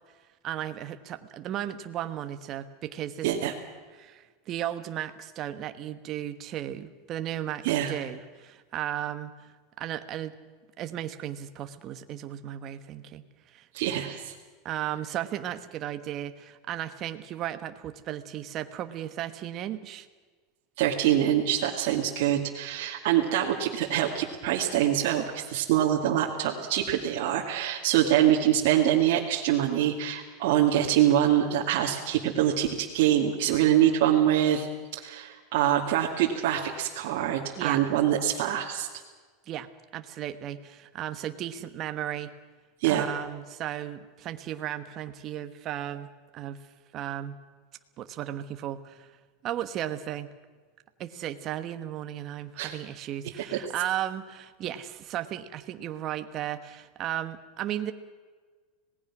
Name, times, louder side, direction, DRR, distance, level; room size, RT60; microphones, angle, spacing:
voice 1, 0.4-3.3 3.9-9.3 9.8-10.3 10.8-13.7 14.6-20.1 37.6-37.8 39.5-39.7 39.9-42.3 42.8-46.6 46.9-47.3 48.0-49.1 49.4-50.3 51.0-57.9, right 11 dB, 35° right, 10 dB, 1.3 m, -35 dB
voice 2, 7.6-8.0 13.7-14.3 20.8-34.7 34.9-38.9 42.8-43.0 52.6-52.7 53.5-53.6, right 11 dB, 60° right, -2 dB, 2.3 m, -25 dB
26.0 x 19.0 x 6.1 m, 1.4 s
supercardioid pair, 155°, 0 cm